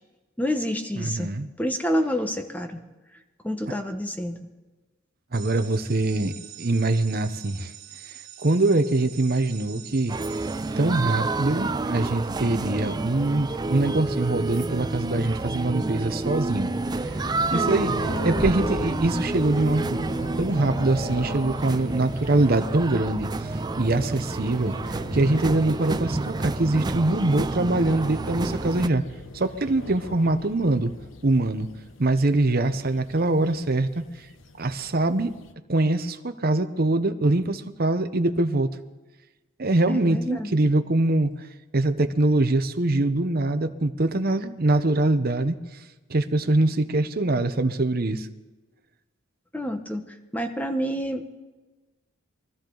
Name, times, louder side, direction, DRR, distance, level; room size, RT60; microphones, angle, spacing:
voice 1, 0.4-1.3 1.6-2.8 3.4-4.4 17.5-17.7 39.9-40.6 49.5-51.4, equal, 10° left, 6 dB, 1.1 m, -28 dB
voice 2, 1.0-1.5 5.3-7.7 8.1-10.2 10.8-16.7 17.0-17.2 17.5-17.9 18.2-24.8 25.1-29.0 29.3-30.9 31.2-31.7 32.0-34.0 34.6-35.3 35.7-38.7 39.6-41.3 41.7-45.6 46.1-48.3, right 2 dB, 50° right, 8 dB, 0.9 m, -23 dB
sound 1, 5.3-11.5, right 10 dB, 85° right, 2.3 m, -45 dB
sound 2, 10.1-28.9, right 3 dB, 20° right, 0.4 m, -29 dB
sound 3, 16.4-35.5, left 2 dB, 70° left, 0.9 m, -40 dB
23.5 x 13.5 x 3.9 m, 1.2 s
head